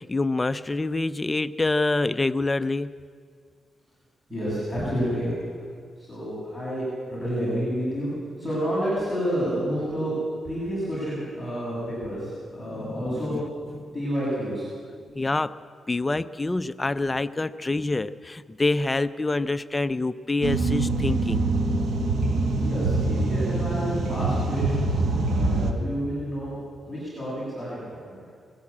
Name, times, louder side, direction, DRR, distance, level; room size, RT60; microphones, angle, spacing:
voice 1, 0.0-2.9 12.6-13.4 13.8-13.9 15.1-15.5 15.9-21.4, left 2 dB, 20° left, 13 dB, 0.5 m, -26 dB
voice 2, 4.3-5.3 6.0-8.1 8.4-10.2 10.4-13.4 13.9-14.7 22.6-24.9 25.3-26.5 26.9-28.2, equal, ahead, -9 dB, 7.4 m, -29 dB
sound 1, 20.4-25.7, right 2 dB, 70° right, 1.8 m, -24 dB
20.5 x 15.5 x 8.6 m, 2.1 s
wide cardioid pair, 125°, 0 cm